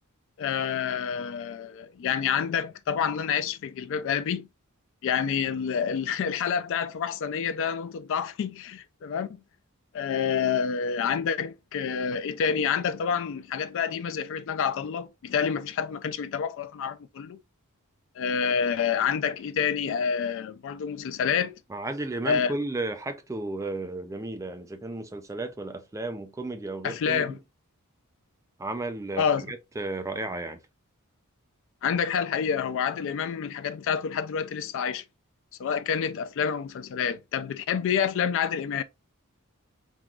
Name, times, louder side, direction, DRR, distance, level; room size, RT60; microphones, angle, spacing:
voice 1, 0.4-4.5 5.0-9.3 9.9-17.4 18.2-21.6 22.3-22.5 26.8-27.4 29.2-29.5 31.8-35.0 35.6-38.8, left 7 dB, 60° left, 0.3 m, -28 dB
voice 2, 21.7-27.4 28.6-30.6, right 2 dB, 15° right, 0.4 m, -33 dB
3.6 x 3.0 x 2.3 m
head